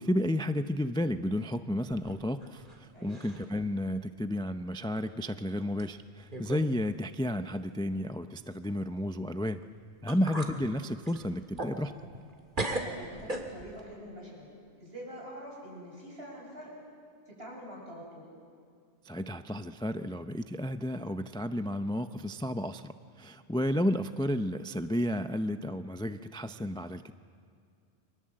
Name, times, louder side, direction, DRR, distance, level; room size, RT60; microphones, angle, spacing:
voice 1, 0.0-9.6 10.0-11.9 19.0-27.1, left 1 dB, 5° left, 9 dB, 0.5 m, -32 dB
sound 1, 1.9-2.8 3.1-3.6 4.0-4.1 5.0-5.1 5.8-5.9 6.3-6.7 7.0-7.1 9.6-9.7 10.1-10.6 11.0-12.3 12.5-13.8, right 2 dB, 45° right, 2.4 m, -37 dB
voice 2, 2.9-3.2 12.8-14.5 14.8-16.8 17.3-18.3, equal, 60° right, -3 dB, 8.3 m, -45 dB
29.0 x 24.5 x 7.7 m, 2.3 s
omnidirectional pair, 1.2 m